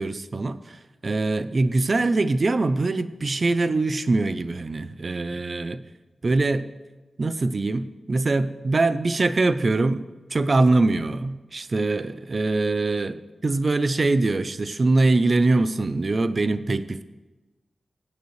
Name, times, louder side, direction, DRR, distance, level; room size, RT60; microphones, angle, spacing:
voice 1, 0.0-5.8 6.2-6.7 7.2-10.0 10.3-17.0, right 3 dB, 35° right, 13 dB, 0.5 m, -23 dB
17.0 x 9.6 x 3.2 m, 1.2 s
wide cardioid pair, 170°, 0 cm